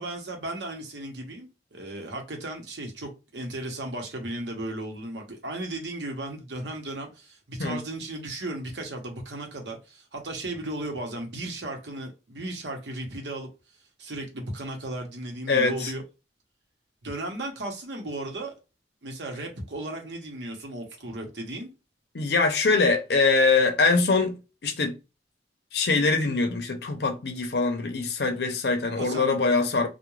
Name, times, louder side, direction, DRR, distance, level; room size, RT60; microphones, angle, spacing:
voice 1, 0.0-13.5 14.0-16.0 17.0-18.5 19.0-21.7 29.0-29.6, right 1 dB, 80° right, 0.8 m, -35 dB
voice 2, 15.5-15.9 22.1-25.0 25.7-29.9, left 3 dB, 65° left, 0.6 m, -23 dB
2.3 x 2.2 x 3.1 m
head